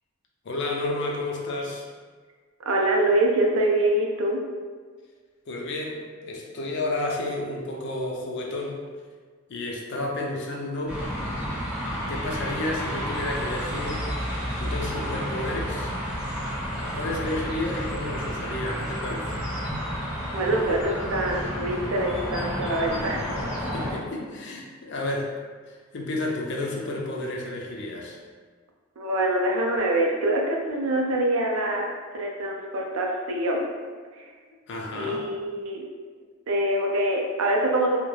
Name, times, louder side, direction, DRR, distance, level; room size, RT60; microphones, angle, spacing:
voice 1, 0.4-1.9 5.5-8.8 9.5-11.0 11.9-14.0 14.6-16.0 16.9-19.4 23.7-25.3 25.7-28.2 34.5-35.3, left 2 dB, 55° left, -1 dB, 0.4 m, -31 dB
voice 2, 2.7-4.4 20.3-23.3 29.0-33.7 34.2-34.3 34.9-35.8 36.5-38.0, right 1 dB, 80° right, 0 dB, 0.4 m, -25 dB
sound 1, 10.9-23.9, equal, 5° right, 0.5 m, -31 dB
2.2 x 2.1 x 3.1 m, 1.5 s
head